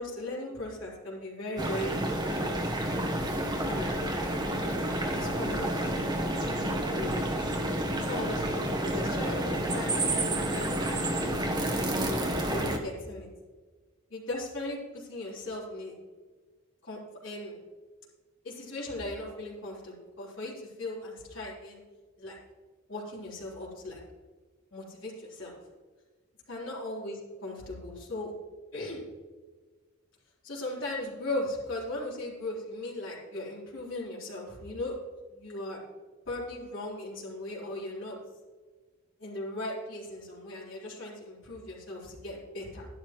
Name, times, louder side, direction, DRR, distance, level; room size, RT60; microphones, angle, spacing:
voice 1, 0.0-2.0 3.7-4.2 5.0-6.0 6.8-7.3 8.0-11.1 12.5-13.3 14.1-15.9 16.8-17.6 18.4-21.8 22.2-22.4 22.9-24.0 24.7-25.6 26.5-27.1 27.4-28.3 28.7-29.0 30.4-35.8 36.3-38.2 39.2-42.9, left 1 dB, 60° left, -5 dB, 3.8 m, -38 dB
sound 1, 1.6-12.8, right 1 dB, 20° right, 1.1 m, -30 dB
12.0 x 10.5 x 3.1 m, 1.4 s
head